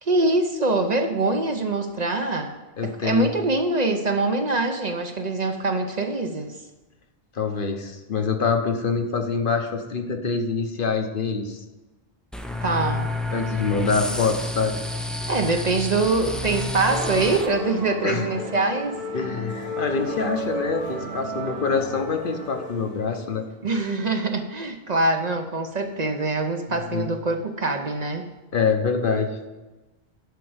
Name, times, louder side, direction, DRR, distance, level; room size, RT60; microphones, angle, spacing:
voice 1, 0.0-2.5 2.8-6.5 12.6-13.1 15.3-19.0 23.6-28.2, right 3 dB, 45° right, 5 dB, 0.8 m, -24 dB
voice 2, 2.8-3.3 7.3-11.6 13.3-14.8 18.0-18.2 19.1-23.5 26.7-27.1 28.5-29.4, left 5 dB, 60° left, 5 dB, 1.1 m, -25 dB
sound 1, 12.3-17.5, left 2 dB, ahead, 0.4 m, -29 dB
sound 2, 16.8-23.4, equal, 80° right, 2.9 m, -33 dB
10.0 x 4.5 x 7.9 m, 1.1 s
omnidirectional pair, 1.0 m